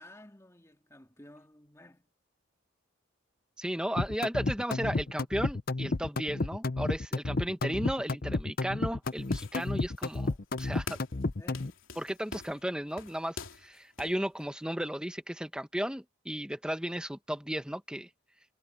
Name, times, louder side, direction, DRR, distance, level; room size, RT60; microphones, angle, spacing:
voice 1, 0.0-2.0 11.4-11.8, left 1 dB, 15° left, 2.8 m, -54 dB
voice 2, 3.6-10.3 10.6-11.0 12.0-18.1, equal, 5° right, 1.2 m, -35 dB
sound 1, 4.0-11.7, left 2 dB, 45° left, 0.7 m, -31 dB
sound 2, 9.0-10.3 10.6-11.2 11.5-14.2, left 4 dB, 75° left, 3.1 m, -45 dB
head